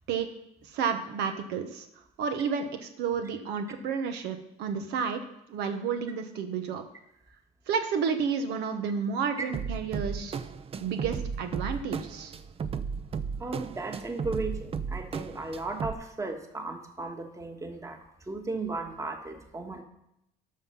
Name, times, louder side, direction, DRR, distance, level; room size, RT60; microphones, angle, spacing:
voice 1, 0.6-1.9 2.2-6.8 7.7-10.4 10.8-12.3, right 6 dB, 85° right, 7 dB, 1.1 m, -31 dB
sound 1, 9.5-15.9, right 6 dB, 35° right, 0.5 m, -35 dB
voice 2, 13.4-19.8, right 3 dB, 20° right, 5 dB, 1.4 m, -36 dB
13.0 x 5.7 x 5.5 m, 0.81 s
cardioid pair, 110°, 17 cm